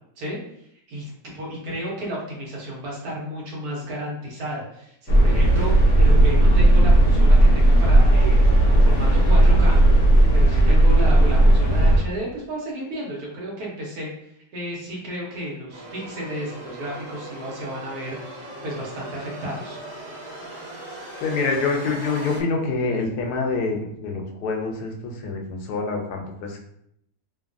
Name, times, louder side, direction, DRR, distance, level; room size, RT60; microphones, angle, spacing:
voice 1, 0.9-8.4 8.7-9.8 10.3-14.1 14.5-19.8, equal, 75° right, -3 dB, 1.3 m, -32 dB
sound 1, 5.1-12.0, right 1 dB, 60° left, 0.7 m, -15 dB
sound 2, 15.7-22.4, right 1 dB, 50° right, 1.1 m, -38 dB
voice 2, 21.2-26.6, left 4 dB, 85° left, 2 dB, 1.1 m, -26 dB
3.0 x 2.2 x 2.4 m, 0.74 s
omnidirectional pair, 1.7 m